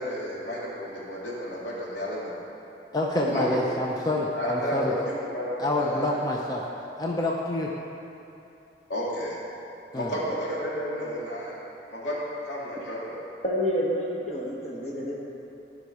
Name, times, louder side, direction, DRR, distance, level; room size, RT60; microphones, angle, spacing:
voice 1, 0.0-2.3 3.3-3.7 4.3-6.2 8.9-9.4 9.9-11.5 11.9-12.2 12.4-13.2, equal, 85° left, -6 dB, 2.3 m, -31 dB
voice 2, 2.9-4.9 5.6-6.6 7.0-7.7 9.9-10.1, left 1 dB, 20° left, -1 dB, 0.5 m, -27 dB
voice 3, 13.4-15.3, equal, 35° left, -4 dB, 1.1 m, -29 dB
12.5 x 5.2 x 4.8 m, 2.8 s
head